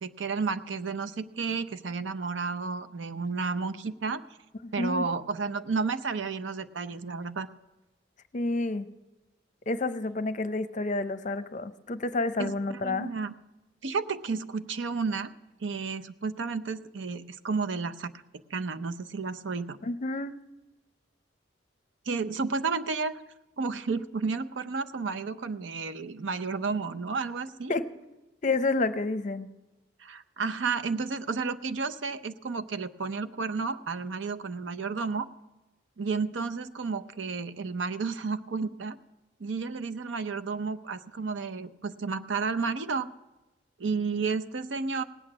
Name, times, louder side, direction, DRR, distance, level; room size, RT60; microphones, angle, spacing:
voice 1, 0.0-4.2 4.7-7.5 12.4-12.5 12.8-13.3 13.8-15.3 15.6-18.1 18.5-19.8 22.1-23.1 23.6-27.8 30.0-35.3 36.0-39.0 39.4-43.1 43.8-45.0, right 4 dB, 80° right, 11 dB, 0.6 m, -32 dB
voice 2, 4.6-5.0 8.3-8.9 9.7-13.1 19.8-20.3 27.7-27.9 28.4-29.5, left 3 dB, 40° left, 12 dB, 0.6 m, -29 dB
18.0 x 8.7 x 6.1 m, 1.0 s
head